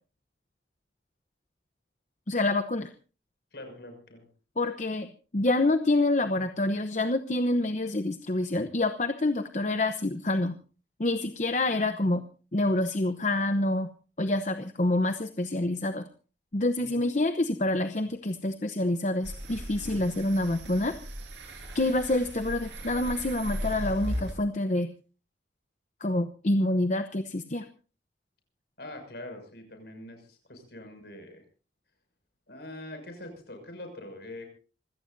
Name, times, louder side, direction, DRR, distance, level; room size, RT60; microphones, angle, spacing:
voice 1, 2.3-2.9 4.6-10.5 11.0-12.2 12.5-13.9 14.2-16.1 16.5-20.9 21.7-24.9 26.0-27.7, left 2 dB, 40° left, 8 dB, 0.8 m, -27 dB
voice 2, 3.5-4.3 16.8-17.0 28.8-31.4 32.5-34.5, left 1 dB, 65° left, 5 dB, 6.3 m, -43 dB
sound 1, 19.2-24.3, equal, 85° right, 6.7 m, -37 dB
26.5 x 17.0 x 2.6 m, 0.36 s
head